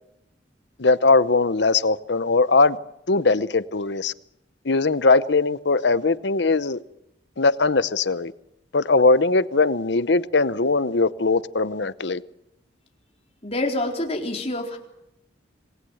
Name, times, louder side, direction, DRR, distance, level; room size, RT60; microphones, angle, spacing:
voice 1, 0.8-2.8 3.1-4.1 4.6-6.8 7.4-8.3 8.7-12.2, left 3 dB, 65° left, 0.8 m, -20 dB
voice 2, 13.4-14.8, left 1 dB, 35° left, 4.0 m, -27 dB
27.0 x 19.5 x 7.9 m
head